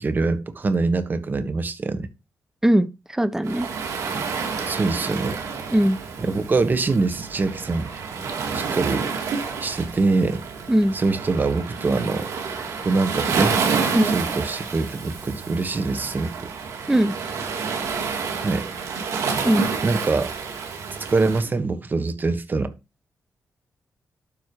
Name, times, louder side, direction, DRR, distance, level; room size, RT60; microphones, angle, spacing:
voice 1, 0.0-2.1 4.6-5.4 6.2-7.9 8.5-9.1 9.6-10.4 10.9-12.3 12.8-13.6 14.1-16.4 18.4-18.6 19.8-20.3 21.0-22.7, right 3 dB, 35° right, 1.4 m, -24 dB
voice 2, 2.6-3.7 5.7-6.0 10.7-11.0 13.9-14.1 16.9-17.1 19.4-19.7, right 1 dB, 10° right, 1.0 m, -19 dB
Waves surf, 3.4-21.4, right 5 dB, 90° right, 2.5 m, -29 dB
12.5 x 4.5 x 4.9 m
cardioid pair, 100°, 5 cm